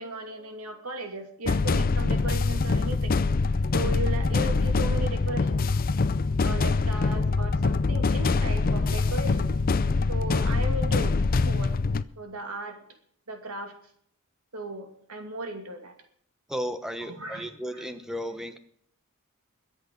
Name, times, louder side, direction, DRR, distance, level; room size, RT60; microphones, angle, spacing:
voice 1, 0.0-3.2 3.7-5.7 6.4-9.6 10.1-11.7 12.2-12.8 13.3-13.7 14.5-15.9 17.1-17.9, right 2 dB, 85° right, 5 dB, 2.6 m, -36 dB
sound 1, 1.5-12.0, left 3 dB, 40° left, 0.5 m, -24 dB
voice 2, 16.5-18.6, equal, ahead, 9 dB, 1.1 m, -34 dB
22.0 x 8.2 x 5.3 m, 0.65 s
head